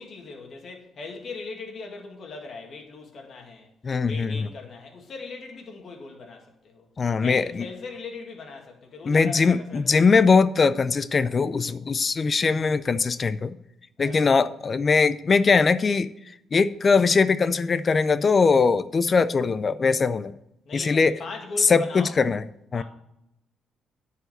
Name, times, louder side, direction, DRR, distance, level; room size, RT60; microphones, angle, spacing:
voice 1, 0.0-3.7 4.0-6.9 7.2-10.1 14.0-14.4 20.7-22.1 22.7-22.8, left 4 dB, 55° left, 2 dB, 2.1 m, -39 dB
voice 2, 3.8-4.5 7.0-7.7 9.0-13.6 14.0-16.1 16.5-20.3 20.7-21.2 21.6-22.4 22.7-22.8, left 4 dB, 35° left, 15 dB, 0.4 m, -21 dB
10.0 x 4.9 x 6.6 m, 0.84 s
cardioid pair, 105°, 0 cm